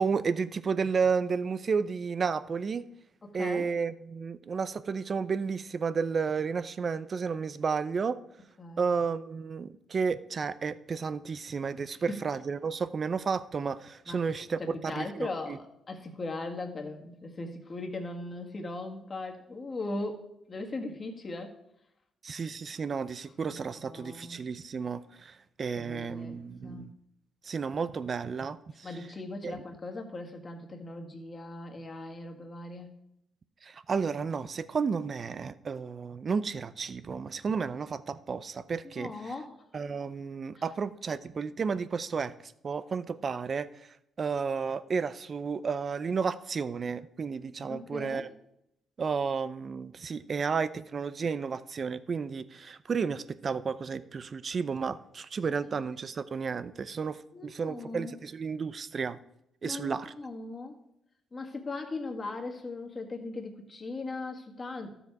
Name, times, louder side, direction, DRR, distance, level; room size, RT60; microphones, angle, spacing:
voice 1, 0.0-2.8 3.3-8.2 8.8-15.6 22.2-26.9 27.4-28.9 29.4-29.6 33.6-39.1 39.7-43.7 44.2-48.3 49.0-59.2 59.6-60.1, right 5 dB, 45° right, 15 dB, 0.6 m, -32 dB
voice 2, 3.2-3.7 8.6-8.9 14.1-20.2 20.5-21.6 23.5-24.4 25.7-26.9 28.8-33.0 39.0-39.6 47.7-48.3 55.7-55.8 57.3-58.1 59.6-60.8 61.3-64.9, left 2 dB, 30° left, 3 dB, 1.8 m, -39 dB
13.0 x 7.1 x 4.7 m, 0.79 s
cardioid pair, 90°, 0 cm